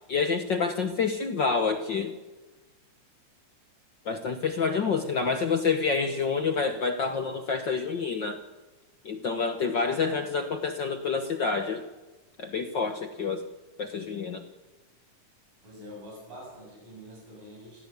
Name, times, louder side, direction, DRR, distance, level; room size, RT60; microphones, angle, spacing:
voice 1, 0.0-2.1 4.0-8.4 9.0-11.8 12.4-13.4 13.8-14.4, left 5 dB, 65° left, 6 dB, 1.1 m, -28 dB
voice 2, 4.8-5.4 9.9-10.4 15.6-17.9, equal, 85° right, -3 dB, 9.4 m, -45 dB
28.5 x 15.5 x 8.3 m, 1.2 s
omnidirectional pair, 3.8 m